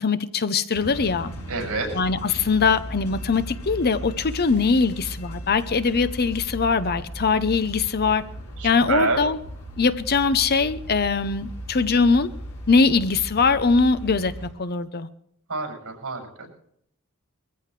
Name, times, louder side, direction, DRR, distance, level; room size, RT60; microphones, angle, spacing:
voice 1, 0.0-1.3 2.0-8.2 8.6-9.4 9.8-12.3 12.7-15.1, left 4 dB, 45° left, 13 dB, 0.8 m, -22 dB
sound 1, 0.7-14.5, equal, 85° left, 4.6 m, -37 dB
voice 2, 1.5-1.9 8.6-9.2 15.5-16.5, right 3 dB, 65° right, 2 dB, 6.9 m, -27 dB
21.5 x 15.0 x 3.3 m, 0.70 s
head